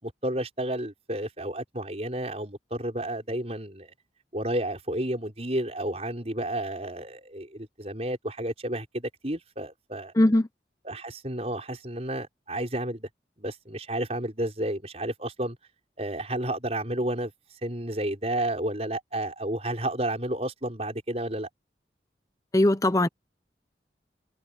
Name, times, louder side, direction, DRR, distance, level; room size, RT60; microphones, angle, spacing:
voice 1, 0.0-3.9 4.3-10.1 10.8-13.1 13.4-15.6 16.0-17.3 17.6-21.5, right 1 dB, 35° right, 6.1 m, -31 dB
voice 2, 10.2-10.5 22.5-23.1, left 1 dB, 20° left, 0.8 m, -20 dB
head